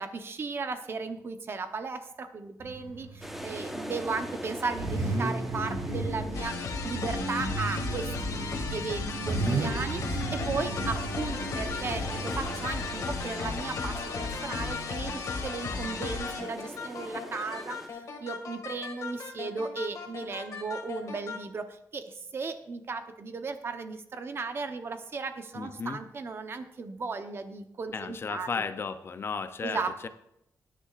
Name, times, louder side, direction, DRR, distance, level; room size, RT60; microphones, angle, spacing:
voice 1, 0.0-28.6 29.6-30.1, right 4 dB, 40° right, 8 dB, 0.9 m, -36 dB
Car / Idling / Accelerating revving vroom, 2.6-14.7, right 2 dB, 85° right, 3.7 m, -35 dB
sound 1, 3.2-17.9, equal, 5° right, 1.1 m, -44 dB
sound 2, 6.3-21.4, left 4 dB, 65° left, 1.9 m, -35 dB
voice 2, 25.6-26.0 27.9-30.1, left 5 dB, 40° left, 10 dB, 0.6 m, -34 dB
20.5 x 10.0 x 2.5 m, 0.78 s
wide cardioid pair, 155°, 6 cm